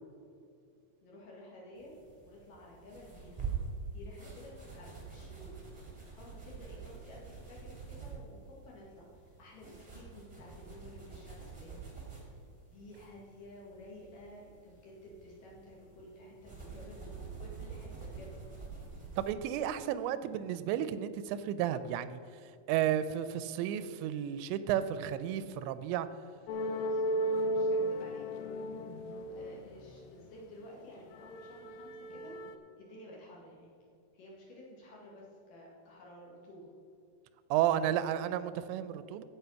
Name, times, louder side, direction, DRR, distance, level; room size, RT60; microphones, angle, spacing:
voice 1, 1.0-1.9 2.2-3.5 3.9-5.5 5.8-11.8 12.2-12.3 12.7-18.4 26.5-28.3 29.3-32.4 32.8-33.7 34.1-36.7, left 1 dB, 55° left, -3 dB, 3.3 m, -52 dB
sound 1, 1.8-19.3, right 5 dB, 20° right, 1.1 m, -46 dB
voice 2, 19.2-22.2 22.7-26.1 37.5-39.2, right 10 dB, 90° right, 13 dB, 2.8 m, -32 dB
sound 2, 26.5-30.5 31.0-32.6, right 1 dB, 80° left, 2.6 m, -35 dB
15.5 x 5.6 x 5.7 m, 2.5 s
omnidirectional pair, 5.1 m